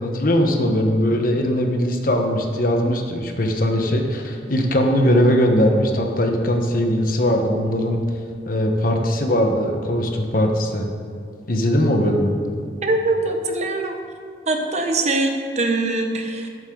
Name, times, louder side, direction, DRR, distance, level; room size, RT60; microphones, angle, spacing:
voice 1, 0.0-8.0 8.5-10.9 11.5-12.4, equal, 50° left, 3 dB, 1.2 m, -20 dB
voice 2, 12.8-14.0 14.5-16.5, right 2 dB, 40° right, 3 dB, 1.1 m, -22 dB
12.5 x 11.0 x 4.0 m, 2.2 s
head